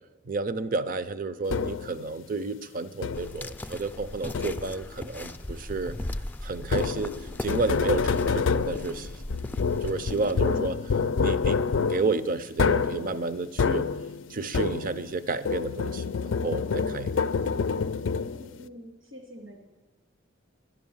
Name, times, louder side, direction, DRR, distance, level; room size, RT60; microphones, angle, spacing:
voice 1, 0.2-6.0 6.4-9.1 9.6-10.8 11.2-13.9 14.3-16.0 16.4-17.1 17.6-17.7, right 3 dB, 45° right, 13 dB, 0.6 m, -31 dB
sound 1, 1.5-2.0 3.0-3.5 4.3-4.9 6.6-15.2 15.4-18.6, left 5 dB, 80° left, 0.4 m, -27 dB
sound 2, 3.1-10.5, left 1 dB, 10° left, 0.4 m, -38 dB
voice 2, 18.2-19.6, equal, 90° right, 1 dB, 2.9 m, -46 dB
11.5 x 10.0 x 7.2 m, 1.3 s
head